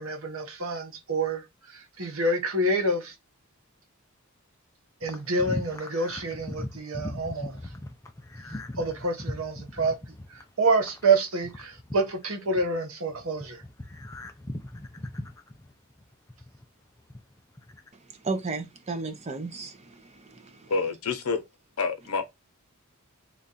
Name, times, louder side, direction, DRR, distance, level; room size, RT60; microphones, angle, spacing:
voice 1, 0.0-3.1 5.0-7.6 8.8-10.2 10.6-13.6, right 2 dB, 65° right, 1.0 m, -27 dB
sound 1, 5.0-12.8 13.1-16.6 17.0-17.9, left 1 dB, 15° left, 0.4 m, -39 dB
voice 2, 18.2-20.7, right 3 dB, 30° right, 0.6 m, -34 dB
voice 3, 20.7-21.4 21.8-22.2, left 4 dB, 85° left, 0.7 m, -27 dB
3.3 x 2.5 x 4.0 m
head